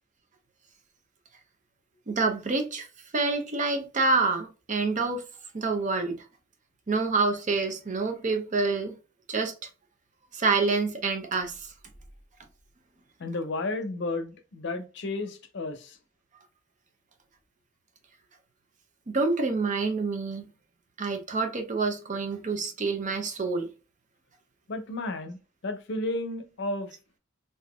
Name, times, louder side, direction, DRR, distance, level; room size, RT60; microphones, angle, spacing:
voice 1, 2.1-2.9 3.1-5.2 5.5-6.2 6.9-8.9 9.3-9.7 10.3-11.7 19.1-20.5 21.0-23.7, right 3 dB, 40° right, 0.6 m, -27 dB
voice 2, 13.2-16.0 24.7-25.4 25.6-26.9, left 2 dB, 65° left, 0.6 m, -32 dB
3.7 x 2.6 x 2.3 m
head